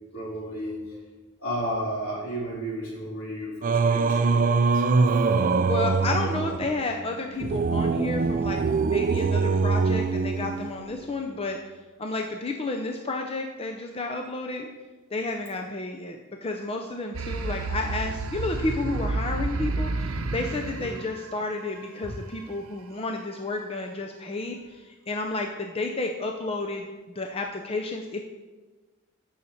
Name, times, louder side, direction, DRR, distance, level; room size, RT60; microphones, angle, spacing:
voice 1, 0.1-1.0 1.4-5.3 20.8-20.9, equal, 75° left, -5 dB, 3.4 m, -33 dB
Singing, 3.6-11.0, right 4 dB, 40° right, 0.4 m, -23 dB
voice 2, 5.7-11.6 12.0-14.7 15.1-28.2, left 2 dB, 25° left, 3 dB, 0.6 m, -31 dB
sound 1, 17.1-22.1, right 3 dB, 80° right, 0.7 m, -30 dB
6.9 x 6.4 x 7.1 m, 1.2 s
head